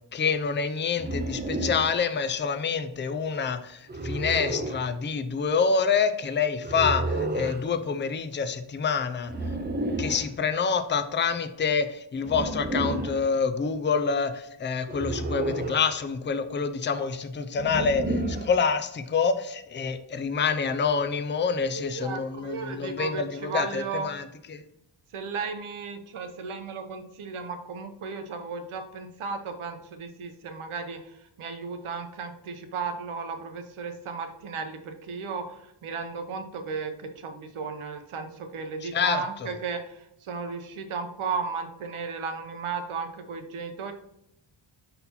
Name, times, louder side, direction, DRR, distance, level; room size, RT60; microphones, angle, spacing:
voice 1, 0.1-9.3 10.0-18.0 18.3-24.6 38.8-39.5, left 5 dB, 25° left, 9 dB, 0.4 m, -27 dB
sound 1, 1.0-1.9 3.9-4.9 6.6-7.6 9.3-10.3 12.2-13.2 14.9-15.9 17.6-18.6, right 2 dB, 20° right, 0.6 m, -30 dB
voice 2, 21.7-24.1 25.1-43.9, right 5 dB, 80° right, 6 dB, 1.0 m, -35 dB
5.5 x 4.2 x 4.1 m, 0.82 s
wide cardioid pair, 135°, 49 cm